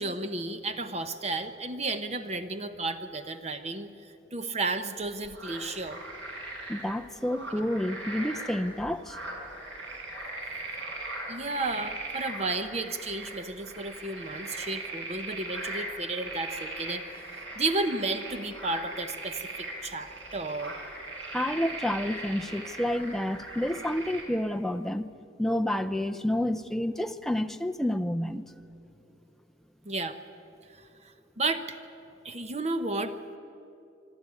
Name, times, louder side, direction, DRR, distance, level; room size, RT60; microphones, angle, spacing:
voice 1, 0.0-3.9 4.3-6.0 11.3-17.0 17.6-20.7 29.9-30.2 31.4-31.8 32.2-33.1, right 3 dB, 35° right, 9 dB, 0.8 m, -32 dB
sound 1, 5.0-24.2, right 2 dB, 85° right, 5.4 m, -39 dB
voice 2, 6.7-9.5 10.1-10.2 21.3-25.1 25.4-28.4, left 1 dB, ahead, 7 dB, 0.5 m, -29 dB
25.0 x 12.5 x 9.6 m, 2.7 s
head